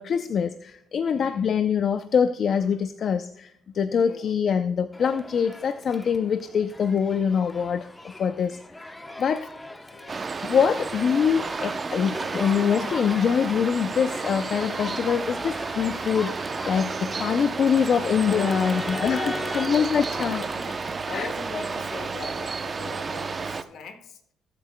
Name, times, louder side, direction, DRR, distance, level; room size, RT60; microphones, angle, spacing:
voice 1, 0.0-9.5 10.4-19.2 19.5-20.4 21.1-21.3, left 7 dB, 55° left, 10 dB, 0.5 m, -24 dB
voice 2, 1.0-1.5 4.0-4.3 8.9-10.2 16.8-17.3 18.3-24.2, left 4 dB, 75° left, 8 dB, 1.3 m, -40 dB
Crowd, 4.9-22.0, left 1 dB, 15° left, 0.8 m, -40 dB
sound 1, 10.1-23.6, right 4 dB, 35° right, 0.6 m, -32 dB
20.5 x 8.1 x 2.2 m, 0.75 s
cardioid pair, 90°, 0 cm